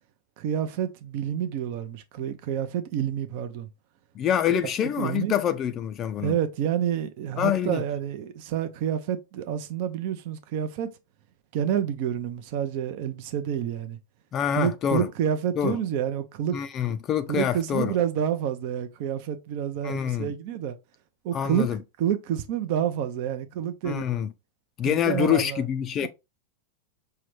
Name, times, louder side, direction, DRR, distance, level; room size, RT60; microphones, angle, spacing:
voice 1, 0.4-3.7 4.5-5.3 6.2-10.9 11.5-14.0 14.5-16.6 17.3-20.8 21.2-21.7 22.0-24.0 24.8-25.6 26.0-26.1, right 9 dB, 55° right, 0.5 m, -28 dB
voice 2, 4.2-6.4 7.4-7.8 14.3-15.1 15.6-15.8 16.5-17.9 19.8-20.3 21.3-21.8 23.8-24.3 24.8-26.1, left 10 dB, 35° left, 0.3 m, -26 dB
4.6 x 2.2 x 3.1 m
hypercardioid pair, 105°, 0 cm